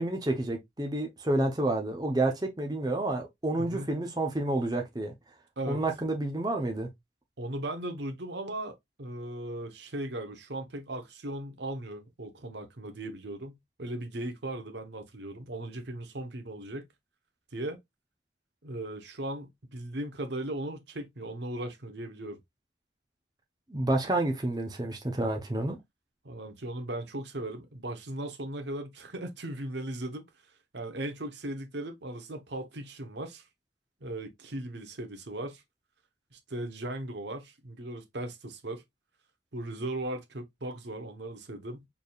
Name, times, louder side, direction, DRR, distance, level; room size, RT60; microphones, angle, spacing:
voice 1, 0.0-5.1 5.7-6.9 23.7-25.8, right 2 dB, 20° right, 0.7 m, -29 dB
voice 2, 3.6-3.9 5.6-5.8 7.4-16.9 17.5-17.8 18.6-22.4 26.2-30.3 30.7-33.4 34.0-35.6 36.3-38.8 39.5-41.9, right 1 dB, 65° right, 1.0 m, -37 dB
4.3 x 3.4 x 2.3 m
head